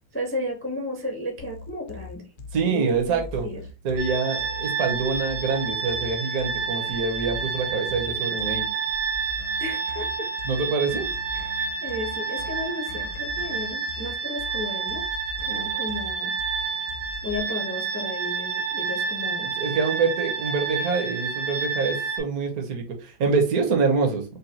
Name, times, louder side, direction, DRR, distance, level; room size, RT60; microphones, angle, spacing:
voice 1, 0.1-2.2 2.6-3.6 9.6-10.3 11.3-15.0 15.4-16.3 17.2-19.5, left 1 dB, 20° left, 2 dB, 0.3 m, -33 dB
sound 1, 1.4-17.4, left 4 dB, 80° left, 1.2 m, -41 dB
voice 2, 2.5-3.5 3.8-8.7 10.4-11.1 19.6-24.2, right 4 dB, 60° right, 4 dB, 1.3 m, -25 dB
sound 2, 4.0-22.2, right 5 dB, 80° right, 1.9 m, -29 dB
5.3 x 2.2 x 2.8 m, 0.30 s
omnidirectional pair, 1.8 m